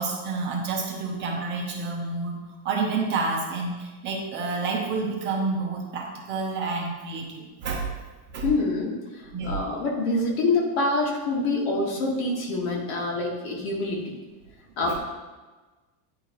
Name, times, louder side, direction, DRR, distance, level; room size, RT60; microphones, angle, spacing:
voice 1, 0.0-2.4 2.6-7.9 8.3-8.5 9.3-9.7 14.9-15.0, right 4 dB, 25° right, -1 dB, 0.7 m, -29 dB
voice 2, 8.4-8.9 9.5-14.1 14.8-15.0, left 2 dB, 70° left, -1 dB, 1.8 m, -26 dB
9.6 x 4.1 x 3.1 m, 1.2 s
cardioid pair, 180°, 42 cm